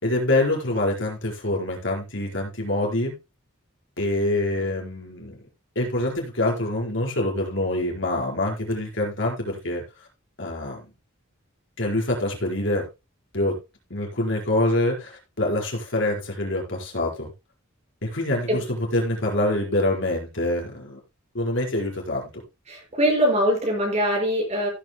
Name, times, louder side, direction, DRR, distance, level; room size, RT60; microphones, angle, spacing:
voice 1, 0.0-3.2 4.0-5.4 5.7-9.8 10.4-10.9 11.8-12.8 13.3-13.5 13.9-17.3 18.0-21.0 21.3-22.2, left 1 dB, 60° left, -1 dB, 4.7 m, -25 dB
voice 2, 22.7-24.7, equal, 35° right, 1 dB, 5.7 m, -22 dB
16.5 x 9.3 x 2.2 m, 0.27 s
head